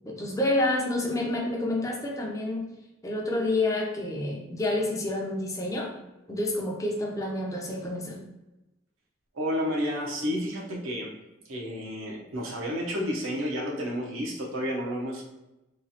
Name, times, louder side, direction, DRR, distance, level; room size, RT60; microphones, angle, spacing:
voice 1, 0.0-2.6 3.0-5.9 6.3-8.2, left 2 dB, 15° left, -1 dB, 0.5 m, -28 dB
voice 2, 9.3-11.1 11.4-15.2, equal, 90° right, -1 dB, 0.7 m, -31 dB
3.0 x 2.4 x 2.7 m, 0.98 s
head